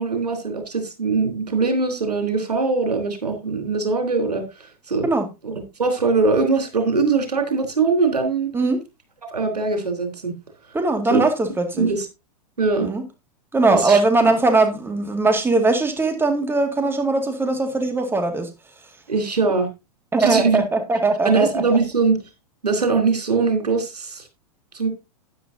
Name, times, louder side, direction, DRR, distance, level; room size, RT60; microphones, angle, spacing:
voice 1, 0.0-5.1 5.4-8.5 9.3-10.3 11.1-11.2 11.8-12.1 12.6-12.9 13.7-14.0 19.1-19.7 20.2-20.6 21.2-22.2 22.6-24.2 24.7-24.9, right 4 dB, 90° right, 3.6 m, -21 dB
voice 2, 10.7-11.9 12.8-13.0 13.5-18.5 20.1-21.6, right 3 dB, 10° right, 2.1 m, -20 dB
12.5 x 10.0 x 2.7 m
hypercardioid pair, 105°, 20 cm